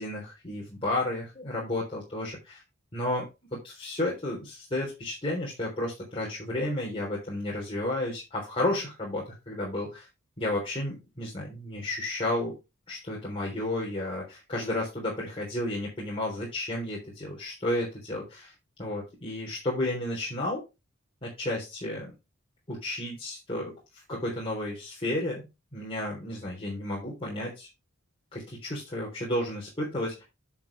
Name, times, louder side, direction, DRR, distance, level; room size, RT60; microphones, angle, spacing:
voice 1, 0.0-2.6 2.9-10.1 10.4-12.5 12.9-18.5 18.8-20.6 21.2-22.1 22.7-23.7 24.1-25.5 25.7-27.7 28.3-30.2, left 1 dB, 25° left, -4 dB, 3.5 m, -32 dB
10.5 x 6.6 x 3.3 m, 0.25 s
head